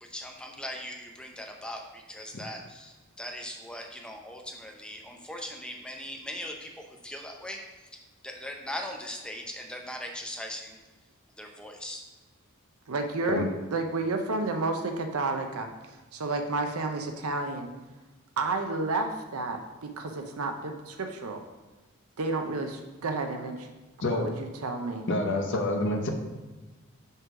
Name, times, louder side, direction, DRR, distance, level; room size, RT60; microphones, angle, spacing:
voice 1, 0.0-7.9 8.2-10.8 11.4-12.0, left 1 dB, 5° left, 2 dB, 0.6 m, -40 dB
voice 2, 12.9-13.4 13.7-17.7 18.4-21.4 22.2-23.7 24.0-25.1, right 3 dB, 85° right, 5 dB, 0.6 m, -31 dB
voice 3, 24.0-24.3 25.1-26.1, left 2 dB, 60° left, 2 dB, 0.8 m, -27 dB
5.4 x 3.8 x 5.9 m, 1.2 s
head